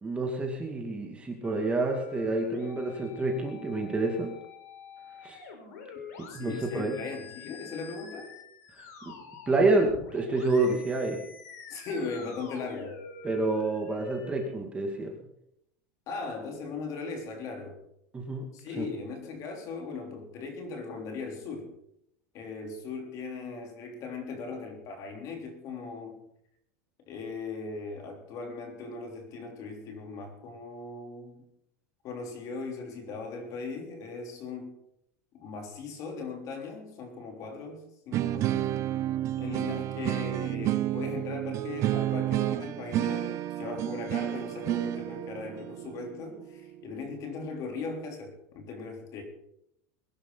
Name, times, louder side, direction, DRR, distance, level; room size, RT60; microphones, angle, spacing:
voice 1, 0.0-4.3 5.2-5.4 6.3-7.0 9.5-11.2 13.2-15.1 18.1-18.4 18.8-18.9, right 2 dB, 15° right, 2 dB, 2.3 m, -28 dB
sound 1, 1.4-14.5, left 6 dB, 90° left, 4.4 m, -47 dB
voice 2, 6.3-8.3 11.7-13.0 16.1-17.8 18.5-21.7 22.3-26.2 27.1-31.4 32.0-34.7 35.3-38.7 39.4-49.2, left 4 dB, 40° left, 4 dB, 3.5 m, -38 dB
sound 2, 38.1-47.1, right 13 dB, 35° right, 0.6 m, -31 dB
21.5 x 11.0 x 4.0 m, 0.76 s
supercardioid pair, 150°, 9 cm